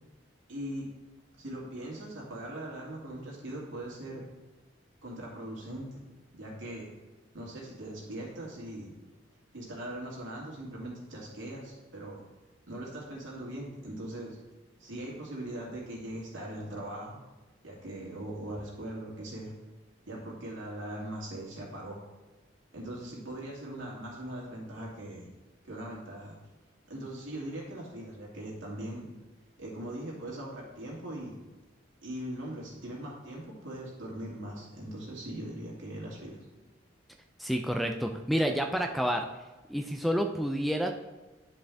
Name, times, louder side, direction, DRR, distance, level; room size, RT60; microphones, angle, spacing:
voice 1, 0.5-0.9 1.4-4.2 5.0-6.0 6.3-6.9 7.3-8.9 9.5-12.2 12.7-14.4 14.8-17.2 17.6-19.5 20.1-22.0 22.7-25.3 25.6-26.3 26.9-29.0 29.6-31.4 32.0-36.3, right 1 dB, 80° right, -3 dB, 2.3 m, -40 dB
voice 2, 37.4-39.3 39.7-40.9, equal, ahead, 3 dB, 0.3 m, -29 dB
10.0 x 5.1 x 3.5 m, 1.2 s
head